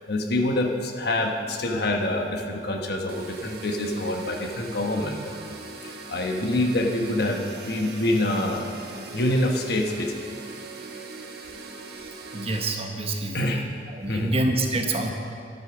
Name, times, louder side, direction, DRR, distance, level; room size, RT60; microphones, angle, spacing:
voice 1, 0.1-5.4 5.8-8.7 9.1-10.4 13.3-13.6 14.1-14.3, left 1 dB, 65° left, 2 dB, 1.2 m, -26 dB
sound 1, 3.1-12.7, right 3 dB, 60° right, 1.1 m, -40 dB
voice 2, 12.0-13.7 13.9-15.1, right 2 dB, 35° right, 3 dB, 1.0 m, -27 dB
11.0 x 8.0 x 6.0 m, 2.3 s
head